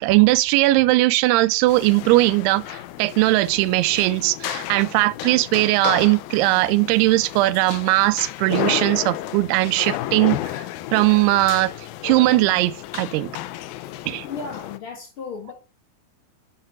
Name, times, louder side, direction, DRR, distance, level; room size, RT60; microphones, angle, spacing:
voice 1, 0.0-10.4 10.9-11.7 12.0-13.3 14.1-14.3, right 19 dB, 85° right, 2.6 m, -19 dB
sound 1, 1.7-14.8, left 14 dB, 80° left, 2.3 m, -32 dB
voice 2, 14.2-15.5, left 5 dB, 55° left, 1.5 m, -35 dB
8.0 x 6.7 x 5.8 m
omnidirectional pair, 4.7 m